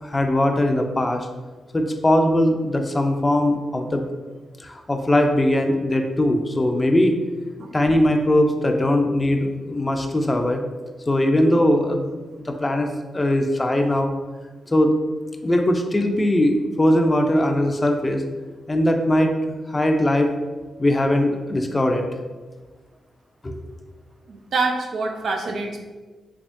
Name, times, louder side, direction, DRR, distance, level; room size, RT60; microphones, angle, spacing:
voice 1, 0.0-1.3 1.7-4.1 4.6-7.1 7.7-10.6 11.1-12.9 13.1-14.1 14.7-14.9 15.4-18.2 18.7-20.3 20.8-22.0 23.4-23.6, left 1 dB, 25° left, 4 dB, 0.5 m, -20 dB
voice 2, 24.3-25.8, right 3 dB, 70° right, 2 dB, 0.5 m, -25 dB
3.5 x 3.3 x 2.6 m, 1.3 s
cardioid pair, 60°, 0 cm